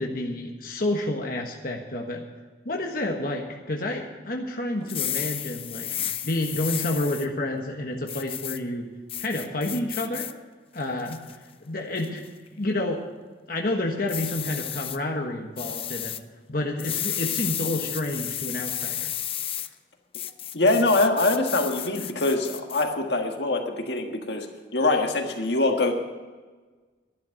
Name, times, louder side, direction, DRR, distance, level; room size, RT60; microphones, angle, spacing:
voice 1, 0.0-2.2 2.6-5.9 6.2-8.9 9.2-10.3 10.7-11.2 11.6-12.2 12.5-13.0 13.5-16.1 16.5-19.1, left 1 dB, 50° left, 1 dB, 1.4 m, -29 dB
sound 1, 4.8-7.3 8.1-8.6 9.1-10.3 10.8-11.4 12.0-12.3 14.1-15.0 15.6-16.2 16.8-19.7 20.1-22.8, left 11 dB, 30° left, 0.5 m, -32 dB
voice 2, 20.5-25.9, left 2 dB, 70° left, 4 dB, 1.6 m, -24 dB
11.5 x 11.5 x 6.4 m, 1.3 s
head